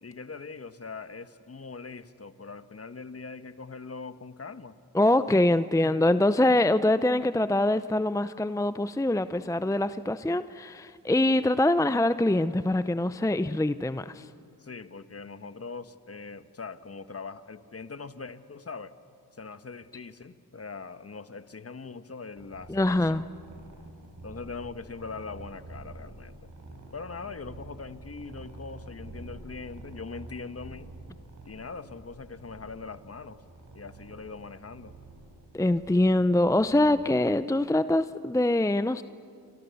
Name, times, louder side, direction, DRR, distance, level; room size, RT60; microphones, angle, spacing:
voice 1, 0.0-4.8 14.6-19.0 19.3-23.1 24.2-26.5 26.9-30.9 31.4-33.4 33.7-34.9, left 4 dB, 35° left, 11 dB, 1.3 m, -41 dB
voice 2, 4.9-14.3 22.7-23.3 35.5-39.0, left 1 dB, 10° left, 13 dB, 0.6 m, -24 dB
sound 1, 22.3-36.9, right 2 dB, 50° right, 7.6 m, -47 dB
29.0 x 26.5 x 7.0 m, 2.3 s
cardioid pair, 50°, 39 cm